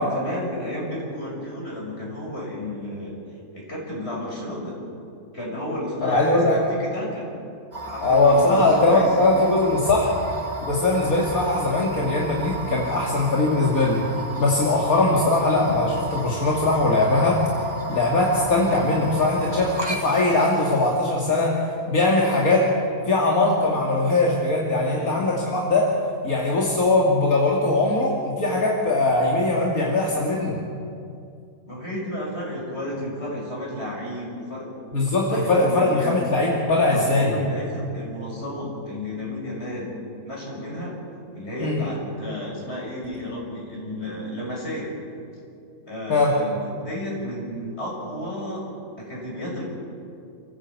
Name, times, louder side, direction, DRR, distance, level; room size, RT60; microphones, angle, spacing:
voice 1, 0.0-3.2 3.5-4.8 5.3-7.3 7.8-9.1 24.8-25.3 31.7-34.7 35.3-36.2 36.5-36.6 36.8-40.0 40.2-41.0 41.3-44.9 45.9-48.7 49.0-49.7, left 1 dB, 45° left, -3 dB, 6.9 m, -32 dB
voice 2, 6.0-6.6 8.0-10.1 10.7-14.1 14.4-17.4 17.9-21.6 21.8-22.7 23.1-25.9 26.2-30.6 34.9-37.3 41.6-41.8 46.1-46.3, left 2 dB, 75° left, -3 dB, 2.9 m, -20 dB
sound 1, 7.7-21.1, right 2 dB, 30° right, 2.8 m, -34 dB
28.0 x 15.0 x 8.5 m, 2.4 s
omnidirectional pair, 1.5 m